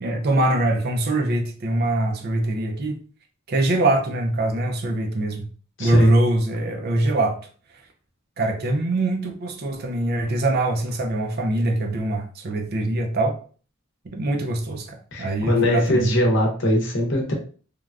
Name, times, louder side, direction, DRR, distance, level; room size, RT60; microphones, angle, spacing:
voice 1, 0.0-3.0 3.5-5.5 5.8-7.4 8.4-13.4 14.1-16.1, right 2 dB, 50° right, 0.5 m, -23 dB
voice 2, 5.8-6.1 15.1-17.3, equal, 60° left, 0.8 m, -21 dB
3.2 x 2.2 x 2.4 m
head